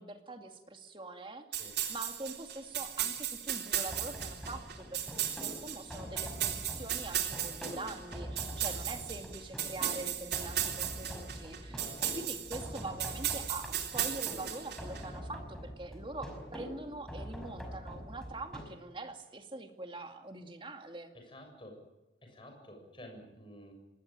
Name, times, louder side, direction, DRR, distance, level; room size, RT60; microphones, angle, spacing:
voice 1, 0.0-21.1, right 2 dB, 25° right, 5 dB, 2.4 m, -44 dB
sound 1, 1.5-15.0, right 11 dB, 60° right, 3.7 m, -36 dB
sound 2, 3.9-18.6, equal, 5° left, 5.5 m, -45 dB
voice 2, 11.7-12.1 21.1-21.8 22.2-23.7, equal, 25° left, 3 dB, 7.4 m, -51 dB
26.0 x 20.0 x 9.1 m, 1.0 s
head